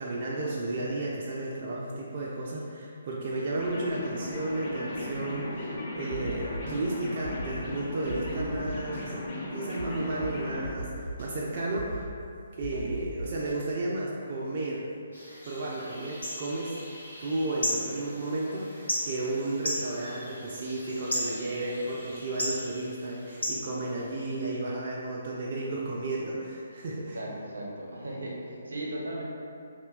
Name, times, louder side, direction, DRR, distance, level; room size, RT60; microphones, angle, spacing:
voice 1, 0.0-9.1 9.5-12.1 12.6-14.8 15.4-16.8 17.2-27.2, right 2 dB, 45° right, -5 dB, 0.3 m, -33 dB
sound 1, 3.6-10.6, left 1 dB, 35° left, 0.5 m, -37 dB
sound 2, 6.1-6.7 7.2-7.6 8.1-9.0 9.8-9.9 10.2-10.3 10.6-11.3 11.8-12.1 12.6-13.5, right 1 dB, 60° left, 0.9 m, -38 dB
sound 3, 15.1-24.5, equal, 85° left, 0.8 m, -36 dB
voice 2, 27.1-29.2, right 1 dB, 85° right, -4 dB, 0.6 m, -37 dB
2.6 x 2.1 x 2.3 m, 2.4 s
figure-of-eight pair, 140°, 0 cm